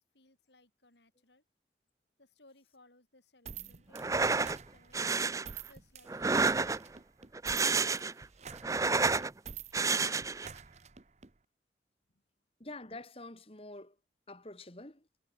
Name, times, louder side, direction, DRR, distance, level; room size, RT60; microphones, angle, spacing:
voice 1, 0.1-1.4 2.2-5.1 5.7-6.7 12.1-12.2, left 2 dB, 75° left, 8.0 m, -65 dB
sound 1, 3.5-11.3, right 7 dB, 40° right, 0.9 m, -48 dB
sound 2, 3.9-4.6 4.9-5.5 6.1-7.0 7.3-8.2 8.5-9.3 9.7-10.5, right 4 dB, 20° right, 0.5 m, -29 dB
voice 2, 12.6-14.0 14.3-15.0, left 2 dB, 30° left, 2.1 m, -47 dB
head